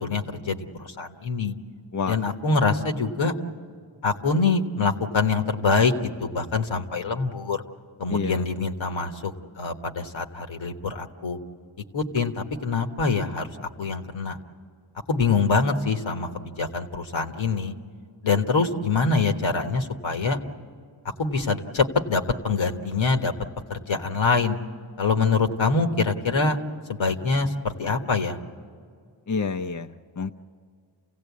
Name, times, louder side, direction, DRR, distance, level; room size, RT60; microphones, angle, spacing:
voice 1, 0.0-1.5 2.1-3.3 4.0-5.9 6.2-7.6 8.0-11.4 11.9-14.4 15.1-17.7 18.2-20.4 21.2-23.3 23.7-24.6 25.0-26.6 27.0-28.4, left 4 dB, 80° left, 5 dB, 1.5 m, -24 dB
voice 2, 8.1-8.5 29.3-30.3, left 5 dB, 40° left, 6 dB, 0.7 m, -28 dB
28.5 x 16.5 x 8.4 m, 2.1 s
cardioid pair, 50°, 47 cm